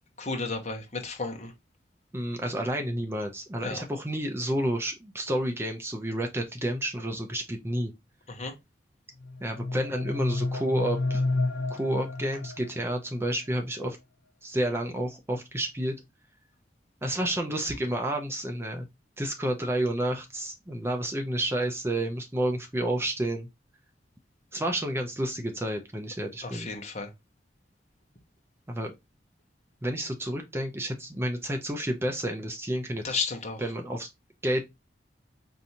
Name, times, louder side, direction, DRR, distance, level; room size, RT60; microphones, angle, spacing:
voice 1, 0.2-1.5 3.6-3.8 8.3-8.5 26.4-27.1 33.0-33.6, left 4 dB, 40° left, 0.9 m, -33 dB
voice 2, 2.1-7.9 9.4-11.2 11.7-14.0 14.4-16.0 17.0-18.9 19.2-23.5 24.5-26.7 28.7-28.9 29.8-33.2 33.6-34.1 34.4-34.7, right 1 dB, 15° right, 0.5 m, -30 dB
sound 1, 9.2-13.2, left 2 dB, 80° left, 0.6 m, -31 dB
4.6 x 2.6 x 2.7 m
head